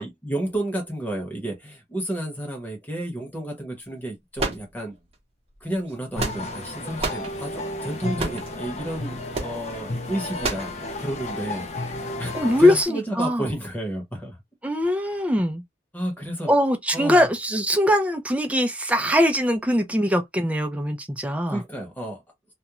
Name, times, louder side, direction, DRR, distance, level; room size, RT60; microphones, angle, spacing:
voice 1, 0.0-4.9 5.6-14.4 15.9-16.5 16.9-17.3 21.5-22.2, right 1 dB, 10° left, 1.0 m, -31 dB
sound 1, 4.4-5.1 5.9-6.6 7.0-7.3 8.2-8.5 9.3-9.6 10.4-10.7, right 3 dB, 35° right, 0.8 m, -29 dB
sound 2, 6.2-12.8, left 2 dB, 40° left, 0.6 m, -33 dB
voice 2, 12.3-13.4 14.6-15.6 16.5-21.6, left 1 dB, 10° right, 0.5 m, -21 dB
2.4 x 2.2 x 2.9 m
head